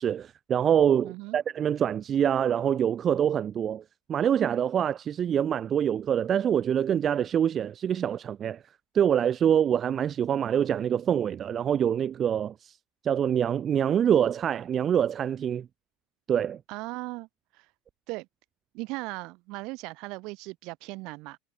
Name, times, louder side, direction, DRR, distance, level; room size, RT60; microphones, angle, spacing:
voice 1, 0.0-3.8 4.1-8.6 8.9-12.8 13.0-15.7 16.3-16.6, right 9 dB, 35° right, 1.7 m, -25 dB
voice 2, 1.0-1.4 16.7-17.3 17.5-17.7 18.1-18.3 18.7-21.4, right 24 dB, 60° right, 7.1 m, -37 dB
hypercardioid pair, 80°, 0 cm